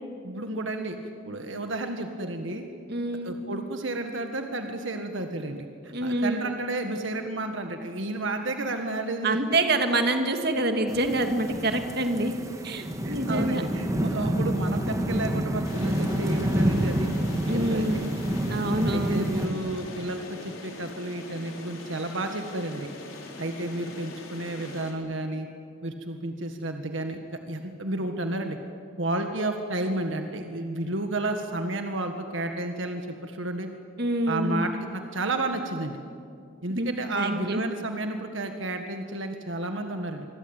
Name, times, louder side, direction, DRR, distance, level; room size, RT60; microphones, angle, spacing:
voice 1, 0.2-1.0 1.3-2.7 3.2-9.4 13.0-17.1 17.5-18.0 18.9-22.9 23.4-25.5 25.8-28.6 29.0-33.7 34.3-36.0 36.6-40.3, right 2 dB, 75° right, 5 dB, 1.7 m, -31 dB
voice 2, 2.9-3.4 5.9-6.4 9.2-12.3 12.6-13.6 17.5-18.1 18.5-19.3 34.0-34.6 36.7-37.6, right 2 dB, 50° right, 5 dB, 2.2 m, -26 dB
sound 1, 10.9-19.5, equal, 15° right, 1.9 m, -28 dB
sound 2, 15.6-24.9, left 2 dB, 85° left, 4.8 m, -43 dB
26.0 x 22.5 x 9.0 m, 2.4 s
head